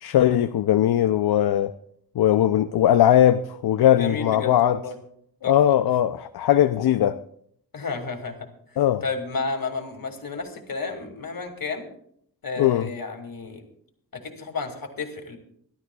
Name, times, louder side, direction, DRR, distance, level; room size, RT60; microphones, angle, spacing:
voice 1, 0.0-1.7 2.2-4.8 5.4-7.2 8.8-9.0 12.6-12.9, left 11 dB, 80° left, 0.5 m, -19 dB
voice 2, 4.0-5.0 5.4-5.7 7.7-11.9 12.4-13.6 14.1-15.4, left 4 dB, 65° left, 2.4 m, -32 dB
25.0 x 12.0 x 2.3 m
wide cardioid pair, 80°, 38 cm